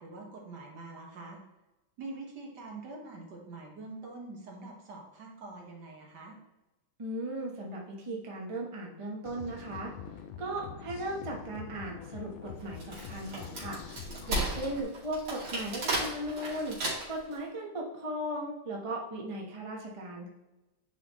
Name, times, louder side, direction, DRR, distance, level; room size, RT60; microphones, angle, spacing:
voice 1, 0.0-1.4 2.0-6.4, right 3 dB, 60° right, 0 dB, 1.8 m, -45 dB
voice 2, 7.0-9.9 10.4-13.8 14.3-16.8 17.1-20.3, right 1 dB, 25° right, -1 dB, 0.8 m, -37 dB
sound 1, 9.3-14.8, left 7 dB, 80° left, 1.4 m, -45 dB
Wood, 12.6-17.3, right 2 dB, 85° right, 3.3 m, -34 dB
9.5 x 3.9 x 3.1 m, 1.0 s
omnidirectional pair, 2.3 m